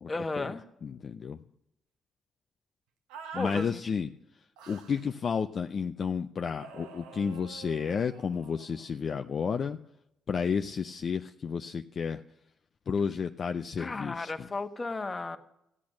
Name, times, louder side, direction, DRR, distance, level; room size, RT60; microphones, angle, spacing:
voice 1, 0.1-0.6 3.3-3.9 13.8-15.4, left 3 dB, 30° left, 8 dB, 1.2 m, -34 dB
voice 2, 0.8-1.4 3.3-4.1 4.7-9.8 10.3-12.2 12.9-14.5, left 6 dB, 50° left, 7 dB, 0.5 m, -31 dB
sound 1, 3.1-3.7 4.6-5.1 6.5-8.9, right 7 dB, 85° right, 0.9 m, -46 dB
13.5 x 8.6 x 6.4 m, 0.83 s
hypercardioid pair, 50°, 0 cm